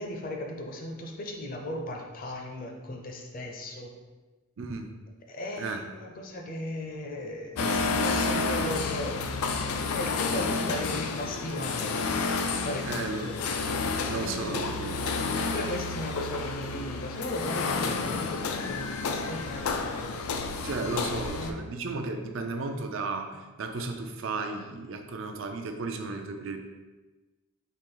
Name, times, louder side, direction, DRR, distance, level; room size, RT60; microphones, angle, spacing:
voice 1, 0.0-3.9 5.3-9.3 9.9-12.0 12.4-13.4 14.2-14.8 15.4-20.2 21.0-21.6, left 1 dB, 40° left, 2 dB, 0.5 m, -37 dB
voice 2, 4.6-4.9 5.6-5.8 7.6-8.7 12.8-13.4 14.1-15.0 20.6-26.6, right 3 dB, 65° right, 5 dB, 0.5 m, -34 dB
sound 1, 7.6-21.5, left 4 dB, 90° left, 0.4 m, -30 dB
4.3 x 3.0 x 3.8 m, 1.2 s
head